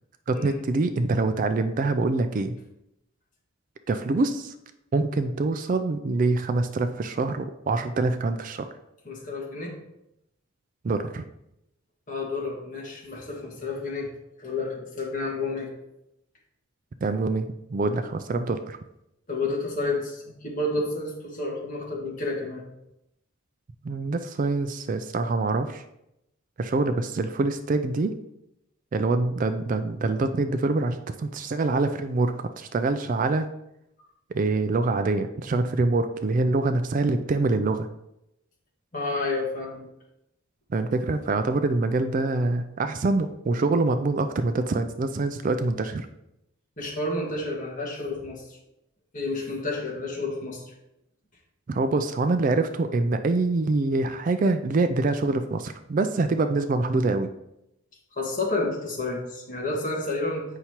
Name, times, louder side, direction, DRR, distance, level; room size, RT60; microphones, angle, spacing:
voice 1, 0.3-2.6 3.9-4.5 4.9-8.7 10.8-11.2 17.0-18.8 23.8-25.8 26.6-28.1 28.9-33.5 34.3-37.9 40.7-46.1 51.7-57.3, right 3 dB, 40° right, 9 dB, 0.3 m, -25 dB
voice 2, 9.0-9.8 12.1-14.1 14.4-15.7 19.3-22.6 38.9-39.9 46.8-48.4 49.1-50.7 58.2-60.5, left 2 dB, 40° left, -2 dB, 1.6 m, -30 dB
8.1 x 5.6 x 2.9 m, 0.85 s
head